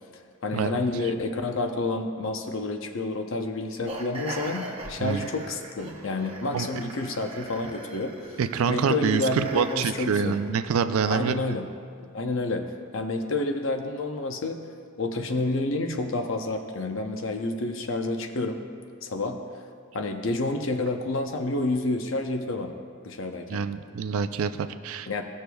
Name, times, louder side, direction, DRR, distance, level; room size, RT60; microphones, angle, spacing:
voice 1, 0.4-8.1 8.7-10.3 11.1-11.7 12.1-12.6 12.9-14.6 15.0-18.7 19.0-19.4 19.9-22.8 23.0-23.7 25.1-25.2, left 2 dB, 65° left, 5 dB, 0.7 m, -29 dB
sound 1, 3.9-10.6, right 1 dB, 25° right, 0.8 m, -40 dB
voice 2, 8.4-11.6 23.5-25.1, right 6 dB, 85° right, 11 dB, 0.4 m, -26 dB
17.0 x 6.5 x 2.3 m, 2.1 s
head